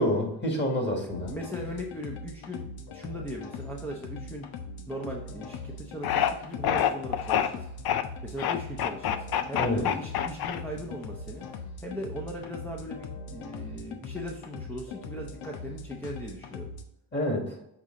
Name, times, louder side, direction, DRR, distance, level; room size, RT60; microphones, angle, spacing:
voice 1, 0.0-1.4 9.6-9.9 17.1-17.6, left 1 dB, 20° left, 1 dB, 1.8 m, -28 dB
voice 2, 1.0-2.7 2.9-4.4 4.9-7.7 8.2-11.5 11.8-16.7, equal, 5° left, 0 dB, 0.6 m, -39 dB
sound 1, 1.1-16.8, left 3 dB, 85° left, 0.9 m, -41 dB
sound 2, 6.0-6.3 6.6-7.5 7.8-8.0 8.4-10.9, left 10 dB, 50° left, 0.6 m, -26 dB
6.7 x 4.2 x 3.7 m, 0.83 s
cardioid pair, 115°, 48 cm